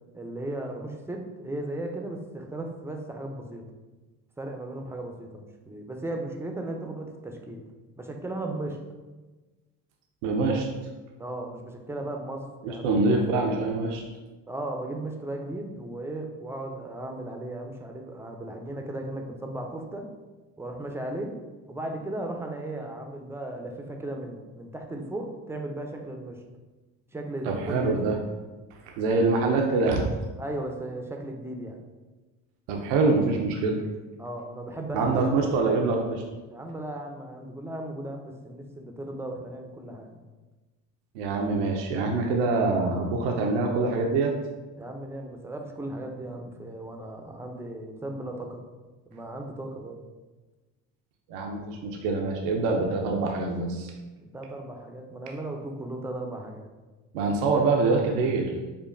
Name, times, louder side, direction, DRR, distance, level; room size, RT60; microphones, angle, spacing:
voice 1, 0.1-3.7 4.4-7.6 8.0-8.8 11.2-12.9 14.5-20.1 20.6-21.4 21.7-26.4 27.1-28.1 30.4-31.8 34.2-35.3 36.5-40.2 44.8-48.6 49.1-50.1 54.2-56.7, right 1 dB, 5° right, 2 dB, 0.4 m, -36 dB
voice 2, 10.2-10.7 12.6-14.0 27.5-28.2 28.8-30.1 32.7-33.8 34.9-36.2 41.1-44.3 51.3-53.9 57.1-58.5, right 3 dB, 90° right, 1 dB, 0.5 m, -25 dB
5.0 x 2.2 x 2.5 m, 1.2 s
supercardioid pair, 75°, 36 cm